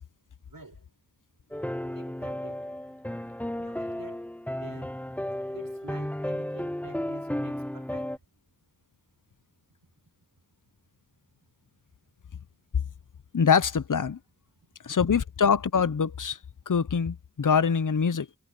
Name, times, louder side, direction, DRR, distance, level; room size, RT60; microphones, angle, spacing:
voice 1, 0.5-0.9 1.9-2.7 3.6-4.3 4.5-5.0 5.5-8.2, right 3 dB, 85° right, 6.5 m, -49 dB
sound 1, 1.5-8.2, left 1 dB, 5° left, 0.6 m, -34 dB
voice 2, 13.3-14.2 14.8-16.4 16.7-18.3, left 6 dB, 65° left, 0.8 m, -24 dB
wide cardioid pair, 50°, 33 cm